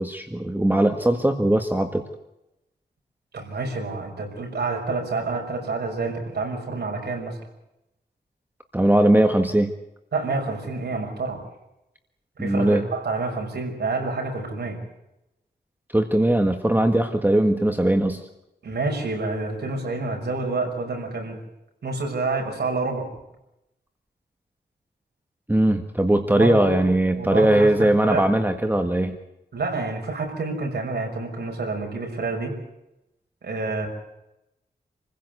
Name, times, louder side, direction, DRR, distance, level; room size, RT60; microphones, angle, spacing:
voice 1, 0.0-2.0 8.7-9.7 12.4-12.8 15.9-18.2 25.5-29.2, right 1 dB, 10° right, 6 dB, 1.6 m, -20 dB
voice 2, 3.3-7.4 10.1-11.4 12.4-14.8 18.6-21.4 21.8-23.1 26.3-26.8 27.2-28.2 29.5-32.6 33.4-33.9, right 3 dB, 70° right, 2 dB, 6.3 m, -28 dB
27.0 x 16.0 x 8.1 m, 0.89 s
wide cardioid pair, 100°, 18 cm